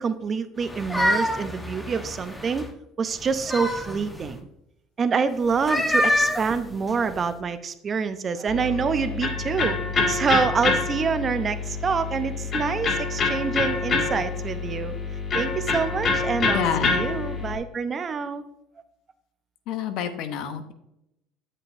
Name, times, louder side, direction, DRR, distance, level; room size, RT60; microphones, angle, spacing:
voice 1, 0.0-2.6 3.0-4.5 5.0-9.8 10.1-14.9 15.3-18.4, right 5 dB, 35° right, 11 dB, 0.7 m, -26 dB
sound 1, 0.6-2.7 3.2-4.4 5.5-7.3, left 1 dB, 10° left, 1.0 m, -27 dB
Electric guitar, 8.5-17.6, left 4 dB, 45° left, 2.1 m, -26 dB
voice 2, 16.5-17.1 19.7-20.7, left 8 dB, 65° left, 9 dB, 0.9 m, -28 dB
8.4 x 7.6 x 2.7 m, 0.84 s
supercardioid pair, 90°, 0 cm